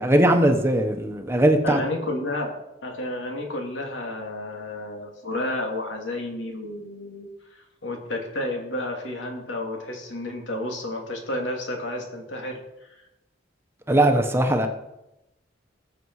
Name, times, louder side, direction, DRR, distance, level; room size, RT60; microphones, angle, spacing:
voice 1, 0.0-1.8 13.9-14.7, right 1 dB, 15° right, 5 dB, 1.0 m, -19 dB
voice 2, 1.6-2.5 2.8-13.0, left 1 dB, 85° left, 1 dB, 2.8 m, -31 dB
20.0 x 6.9 x 4.8 m, 0.91 s
head